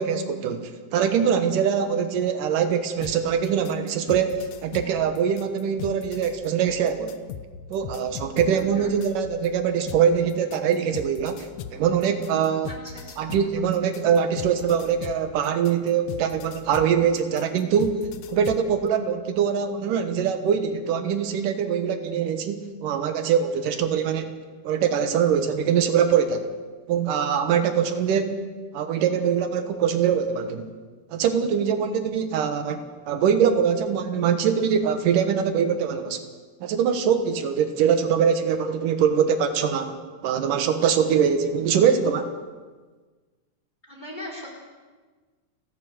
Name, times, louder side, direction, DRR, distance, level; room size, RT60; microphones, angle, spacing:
voice 1, 0.0-7.2 7.7-12.7 13.2-18.0 18.3-24.4 24.6-26.5 26.9-28.4 28.7-30.7 31.1-36.2 36.6-40.0 40.2-42.3, right 7 dB, 85° right, 8 dB, 2.9 m, -23 dB
sound 1, 3.0-9.5 9.9-18.7, left 8 dB, 75° left, 2.4 m, -39 dB
voice 2, 8.5-8.9 12.7-13.3 43.8-44.5, left 1 dB, 15° left, -1 dB, 4.3 m, -39 dB
29.5 x 11.5 x 7.9 m, 1.4 s
omnidirectional pair, 3.7 m